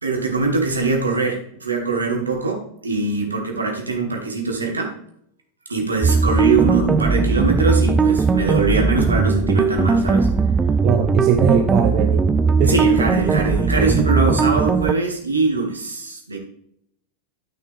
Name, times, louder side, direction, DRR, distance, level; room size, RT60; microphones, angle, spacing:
voice 1, 0.0-4.9 5.7-10.3 12.6-16.4, right 3 dB, 75° right, 1 dB, 2.2 m, -22 dB
sound 1, 6.0-14.9, right 4 dB, 15° right, 0.4 m, -18 dB
voice 2, 10.8-12.3 12.6-12.7, right 9 dB, 40° right, 5 dB, 0.9 m, -19 dB
13.0 x 5.9 x 3.6 m, 0.71 s
figure-of-eight pair, 90°, 0 cm